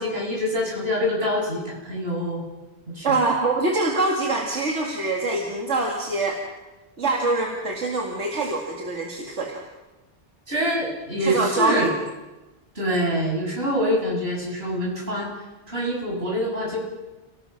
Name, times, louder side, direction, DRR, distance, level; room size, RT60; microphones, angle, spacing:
voice 1, 0.0-2.4 3.0-3.1 10.5-11.9 12.7-15.3 15.7-16.8, equal, 60° right, -3 dB, 8.2 m, -25 dB
voice 2, 3.0-6.4 7.0-9.6 11.2-11.9, right 2 dB, 85° right, 0 dB, 2.5 m, -24 dB
29.5 x 18.0 x 5.9 m, 1.1 s
omnidirectional pair, 1.2 m